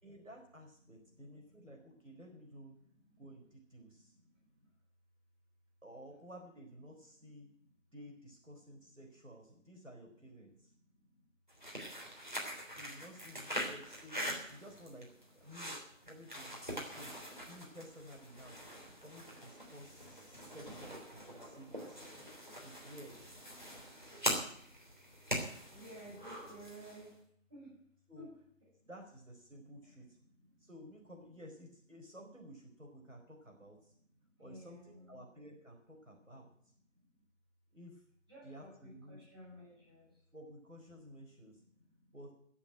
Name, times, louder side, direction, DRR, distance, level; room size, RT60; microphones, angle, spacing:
voice 1, 0.0-2.8 3.2-4.2 5.8-7.5 7.9-10.7 12.8-17.1 17.5-18.6 19.0-22.1 22.6-23.4 28.1-28.3 28.9-30.2 30.6-33.9 34.4-36.7 37.7-38.0 38.4-39.2 40.3-41.6 42.1-42.3, equal, 75° right, 1 dB, 4.5 m, -54 dB
voice 2, 0.9-1.6 2.1-2.3 2.5-2.6 3.1-3.2 3.9-4.7 7.2-7.8 10.5-11.3 21.5-21.6 22.1-22.5 23.6-24.1 25.6-27.2 27.5-27.8 28.1-28.4 28.8-28.9 29.8-30.1 30.3-30.7 34.2-35.2 36.2-36.3 36.9-37.2 38.3-40.2 41.3-42.2, right 1 dB, 20° right, -10 dB, 7.7 m, -57 dB
sound 1, 11.5-27.1, equal, 35° right, 3.4 m, -43 dB
15.0 x 7.2 x 9.1 m, 0.66 s
figure-of-eight pair, 175°, 39 cm